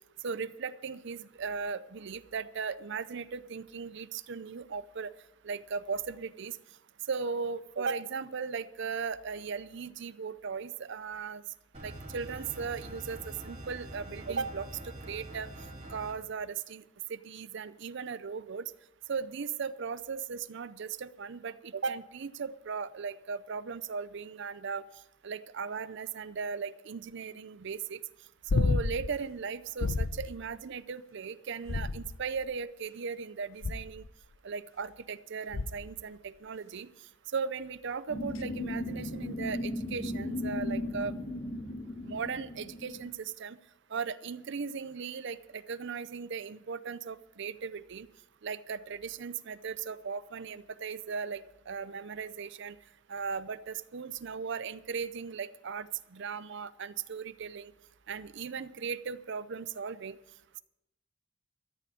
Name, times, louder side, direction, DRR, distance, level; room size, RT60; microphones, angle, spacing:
voice 1, 0.2-5.1 5.4-6.6 7.1-11.4 11.8-15.5 15.9-16.8 17.1-18.7 19.1-24.8 25.2-28.0 28.5-34.0 34.4-36.9 37.3-41.2 42.0-43.6 43.9-48.1 48.4-52.8 53.1-57.7 58.1-60.2, right 5 dB, 65° right, 15 dB, 0.6 m, -37 dB
sound 1, 11.7-16.1, right 1 dB, 35° right, 3.8 m, -45 dB
sound 2, 28.5-29.1 29.8-30.3 31.6-32.4 33.6-34.1 35.5-36.0 38.3-38.4, left 3 dB, 85° left, 0.6 m, -30 dB
sound 3, 38.1-43.1, left 1 dB, 35° left, 2.4 m, -36 dB
13.5 x 6.8 x 9.3 m, 0.91 s
head